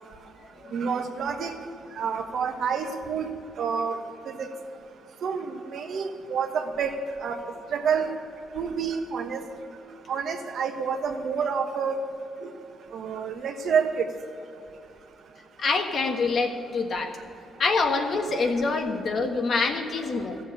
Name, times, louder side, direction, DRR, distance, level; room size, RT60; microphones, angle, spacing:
voice 1, 0.7-1.5 2.0-3.3 3.6-4.0 4.2-4.5 5.2-6.9 7.2-7.4 7.7-8.1 8.5-9.4 10.1-12.0 12.4-12.5 12.9-14.0, right 6 dB, 65° right, 5 dB, 1.2 m, -28 dB
voice 2, 15.6-17.1 17.6-20.4, left 4 dB, 55° left, 4 dB, 1.5 m, -25 dB
14.5 x 7.2 x 8.5 m, 2.8 s
cardioid pair, 90°, 0 cm